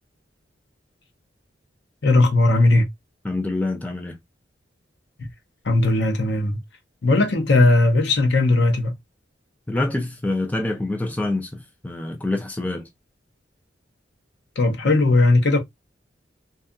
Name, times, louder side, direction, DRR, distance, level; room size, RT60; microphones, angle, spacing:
voice 1, 2.0-2.8 5.2-5.3 5.6-6.6 7.0-8.9 14.6-15.6, left 2 dB, 65° left, 0.6 m, -18 dB
voice 2, 3.2-4.2 9.7-12.9, left 2 dB, 10° left, 0.3 m, -26 dB
2.7 x 2.3 x 2.3 m
head